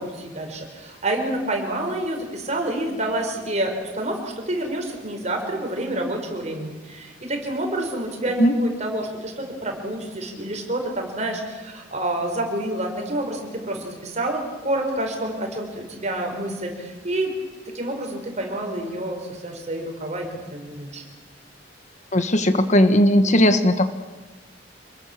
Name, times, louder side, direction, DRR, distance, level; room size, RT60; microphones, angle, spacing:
voice 1, 0.0-17.3 17.7-21.0, right 1 dB, 35° right, 2 dB, 5.3 m, -28 dB
voice 2, 22.1-23.9, equal, 40° left, 9 dB, 1.3 m, -17 dB
27.0 x 22.0 x 7.4 m, 1.3 s
head